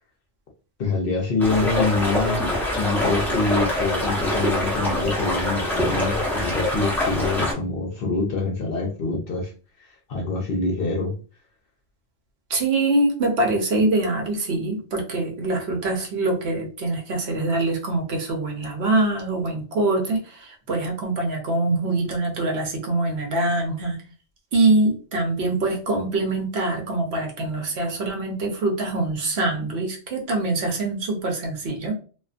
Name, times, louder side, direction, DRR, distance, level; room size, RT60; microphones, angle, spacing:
voice 1, 0.8-2.4 2.8-9.5 10.1-11.1, left 3 dB, 60° left, 0 dB, 0.7 m, -25 dB
sound 1, 1.4-7.5, left 1 dB, ahead, 0.6 m, -24 dB
voice 2, 12.5-24.0 24.5-31.9, right 2 dB, 65° right, 2 dB, 0.9 m, -24 dB
2.4 x 2.4 x 2.4 m, 0.37 s
omnidirectional pair, 1.3 m